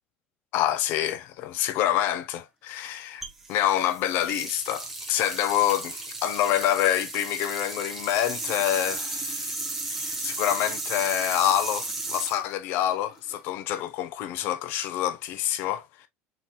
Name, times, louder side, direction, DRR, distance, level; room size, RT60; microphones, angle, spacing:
voice 1, 0.5-3.2 3.5-9.5 9.9-16.1, left 12 dB, 50° left, 0.5 m, -27 dB
sound 1, 3.2-13.4, right 2 dB, 5° right, 0.6 m, -34 dB
3.7 x 2.9 x 2.3 m
cardioid pair, 180°, 5 cm